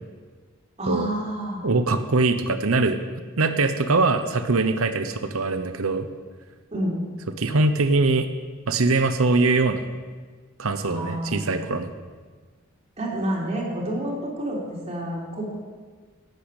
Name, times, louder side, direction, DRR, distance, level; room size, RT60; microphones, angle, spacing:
voice 1, 0.8-1.6 6.7-7.0 10.8-11.7 13.0-15.5, right 1 dB, 30° right, -3 dB, 3.6 m, -29 dB
voice 2, 1.6-3.0 3.4-6.1 7.4-8.3 8.7-9.8 10.6-11.9, right 3 dB, 80° right, 9 dB, 0.9 m, -22 dB
11.5 x 9.2 x 8.3 m, 1.5 s
head